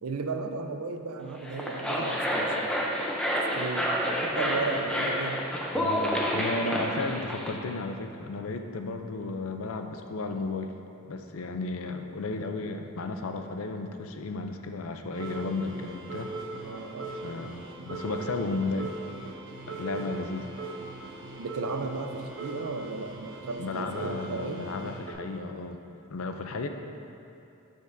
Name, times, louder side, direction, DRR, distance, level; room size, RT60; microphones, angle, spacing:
voice 1, 0.0-2.7 3.5-5.4 6.7-6.9 16.6-17.1 21.4-24.6, right 3 dB, 85° right, 6 dB, 0.5 m, -35 dB
sound 1, 1.3-7.5, equal, 5° left, 0.6 m, -29 dB
voice 2, 5.7-10.7 11.0-16.3 17.1-19.0 19.7-20.5 23.6-25.8 26.1-26.7, left 3 dB, 70° left, 5 dB, 0.5 m, -34 dB
sound 2, 15.1-25.1, right 3 dB, 55° right, 0.9 m, -40 dB
12.5 x 5.2 x 2.6 m, 2.7 s
head